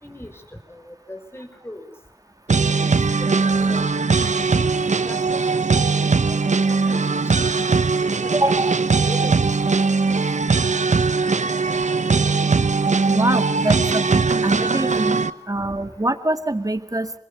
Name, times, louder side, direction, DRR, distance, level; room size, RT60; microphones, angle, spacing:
voice 1, 0.0-0.4 0.7-1.9 2.5-3.9 4.4-5.8 6.2-6.4 6.7-8.2 8.5-9.8, left 1 dB, 20° left, 7 dB, 5.3 m, -39 dB
sound 1, 2.5-15.3, right 4 dB, 85° right, 0.9 m, -20 dB
voice 2, 8.3-8.7 13.1-15.2 15.5-17.2, right 1 dB, 30° right, 9 dB, 2.2 m, -24 dB
27.5 x 21.5 x 7.1 m, 0.63 s
wide cardioid pair, 40°, 12 cm